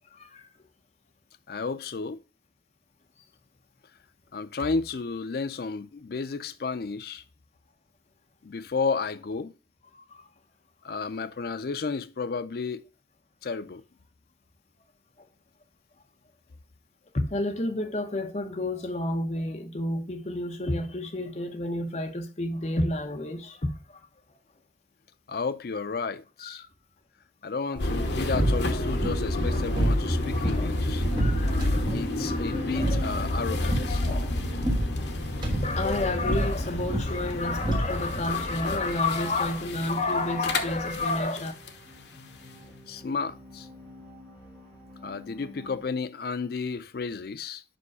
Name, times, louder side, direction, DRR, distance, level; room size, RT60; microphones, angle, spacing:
voice 1, 0.1-0.5 17.1-24.0 26.4-26.7 27.7-28.2 28.5-29.0 29.3-30.8 31.2-34.4 35.6-41.5, left 2 dB, 40° left, 0.9 m, -31 dB
voice 2, 1.5-2.2 4.3-7.2 8.4-9.5 10.8-12.8 13.4-13.8 25.3-26.6 27.4-31.0 31.9-34.0 42.9-43.7 45.0-47.6, left 4 dB, 55° left, 0.4 m, -32 dB
sound 1, 27.7-38.3, right 1 dB, 25° right, 1.5 m, -31 dB
sound 2, 27.8-41.8, left 1 dB, 75° left, 0.9 m, -30 dB
sound 3, 29.7-45.8, equal, 5° right, 2.7 m, -50 dB
5.4 x 5.2 x 4.7 m
head